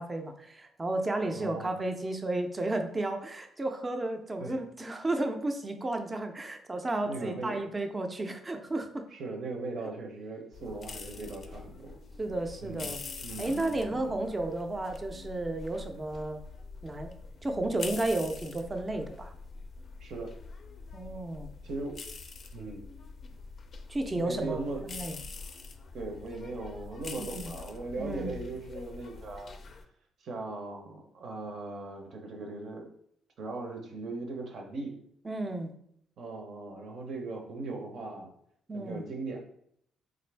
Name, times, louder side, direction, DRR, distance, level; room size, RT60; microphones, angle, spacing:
voice 1, 0.0-9.1 12.2-13.0 13.4-16.4 16.8-17.1 17.4-19.3 20.9-21.5 23.9-25.2 27.2-27.5 28.0-28.4 35.2-35.7 38.7-39.0, right 2 dB, 25° right, 5 dB, 0.5 m, -33 dB
voice 2, 1.3-1.7 4.4-4.6 7.0-7.6 9.1-12.0 12.6-12.9 13.2-14.1 20.0-20.3 21.6-22.0 22.5-22.8 24.2-24.8 25.9-29.6 30.2-32.9 33.4-35.0 36.2-38.3 38.7-39.4, right 3 dB, 65° right, 3 dB, 0.7 m, -39 dB
sound 1, 10.5-29.8, left 4 dB, 50° left, 0.4 m, -45 dB
3.7 x 2.5 x 3.3 m, 0.70 s
cardioid pair, 90°, 0 cm